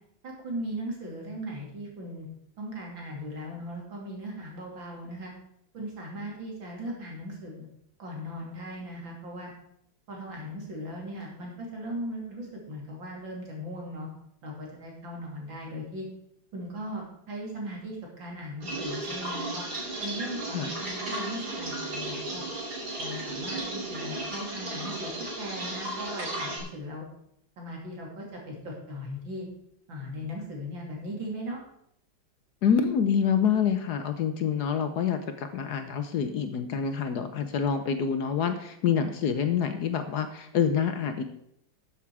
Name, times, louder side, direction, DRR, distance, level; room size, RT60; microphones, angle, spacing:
voice 1, 0.2-2.3 2.6-5.3 5.7-7.7 8.0-9.5 10.1-14.1 14.4-16.1 16.5-19.7 20.0-22.4 23.0-25.1 25.4-27.1 27.6-29.5 29.9-31.6, equal, 80° right, -1 dB, 3.6 m, -38 dB
sound 1, 18.6-26.6, right 2 dB, 55° right, 3.3 m, -35 dB
voice 2, 32.6-41.2, left 7 dB, 65° left, 8 dB, 1.3 m, -27 dB
13.0 x 7.3 x 4.8 m, 0.74 s
omnidirectional pair, 2.1 m